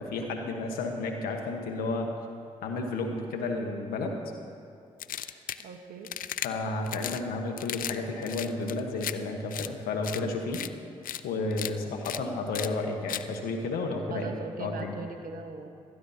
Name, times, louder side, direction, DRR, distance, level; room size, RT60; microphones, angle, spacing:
voice 1, 0.0-2.2 2.6-4.2 5.2-5.4 6.4-10.6 11.2-15.0, left 3 dB, 90° left, 3 dB, 1.3 m, -32 dB
sound 1, 5.0-5.6 6.0-6.5 6.9-7.2 7.6-8.0 8.2-9.1 9.5-9.7 10.0-10.2 10.5-10.7 11.0-11.2 11.5-11.7 12.0-12.2 12.5-12.7 13.1-13.2, left 11 dB, 70° left, 0.5 m, -35 dB
voice 2, 5.6-6.1 14.1-15.7, right 4 dB, 75° right, 5 dB, 1.2 m, -39 dB
19.5 x 13.0 x 2.9 m, 2.5 s
supercardioid pair, 45°, 15 cm